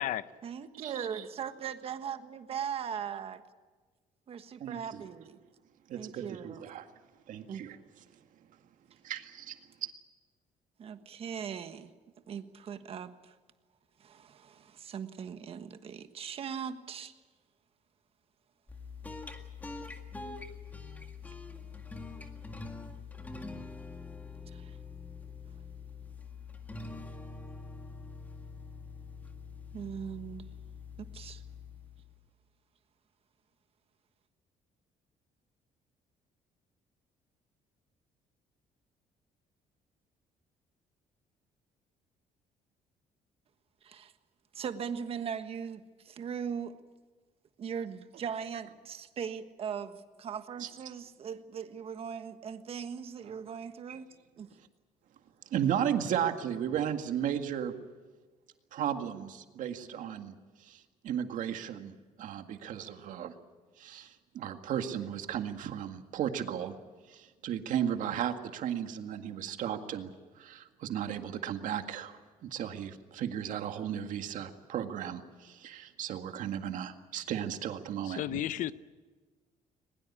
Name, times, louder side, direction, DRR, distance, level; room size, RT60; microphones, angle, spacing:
voice 1, 0.4-3.4 4.3-5.4 5.9-6.6 7.5-7.6 10.8-11.9 12.3-13.3 14.0-17.1 24.5-24.8 29.7-30.5 31.0-31.4 43.8-44.1 44.5-46.8 47.6-54.1 54.4-54.5, right 7 dB, 40° right, 10 dB, 1.4 m, -39 dB
voice 2, 4.6-5.0 5.9-6.9 7.3-7.8 9.0-9.9 50.6-50.7 53.9-54.0 55.5-57.7 58.7-60.4 60.6-63.3 63.8-66.7 67.1-70.1 70.4-78.4, right 9 dB, 65° right, 7 dB, 2.0 m, -35 dB
sound 1, 18.7-32.3, left 4 dB, 10° left, 1.9 m, -45 dB
voice 3, 78.0-78.7, left 13 dB, 65° left, 15 dB, 0.8 m, -32 dB
21.5 x 21.5 x 8.6 m, 1.4 s
cardioid pair, 165°, 14 cm